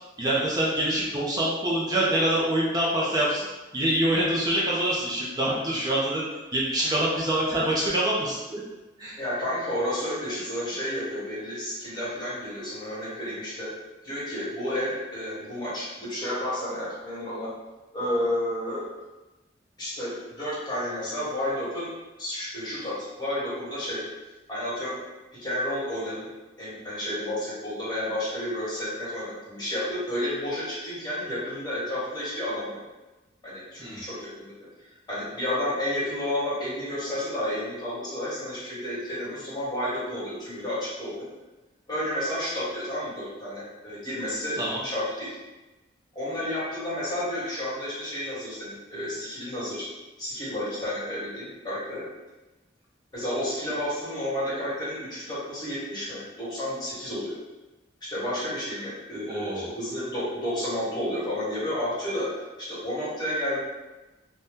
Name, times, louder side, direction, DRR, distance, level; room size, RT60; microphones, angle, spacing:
voice 1, 0.2-3.5 3.7-6.2 6.5-8.6 9.0-9.1 33.8-34.0 44.6-44.8 59.3-59.7, right 1 dB, 20° right, -6 dB, 0.5 m, -25 dB
voice 2, 9.2-13.7 14.0-17.5 17.9-18.8 19.8-21.9 22.2-24.0 24.5-25.0 25.4-26.3 26.6-32.8 33.4-34.5 35.1-41.3 41.9-45.3 46.1-49.9 50.2-52.0 53.1-57.3 58.0-62.3 62.6-63.6, left 1 dB, 20° left, -9 dB, 1.4 m, -31 dB
2.7 x 2.2 x 3.5 m, 1.1 s
head